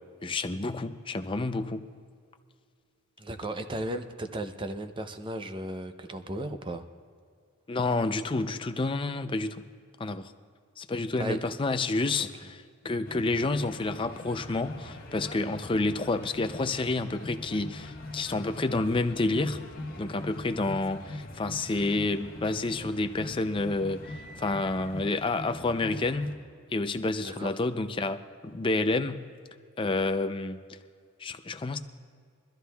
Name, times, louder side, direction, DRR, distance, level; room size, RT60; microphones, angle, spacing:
voice 1, 0.2-1.9 7.7-9.7 10.0-10.3 10.8-19.6 20.0-26.3 26.7-28.2 28.4-29.3 29.8-30.6 31.2-31.8, left 2 dB, 25° left, 8 dB, 0.4 m, -29 dB
voice 2, 3.2-6.9 11.2-11.4 12.2-12.3 27.2-27.5, right 1 dB, 25° right, 8 dB, 0.6 m, -35 dB
sound 1, 13.0-26.4, left 2 dB, 40° left, 1.4 m, -42 dB
23.0 x 13.0 x 2.3 m, 2.2 s
head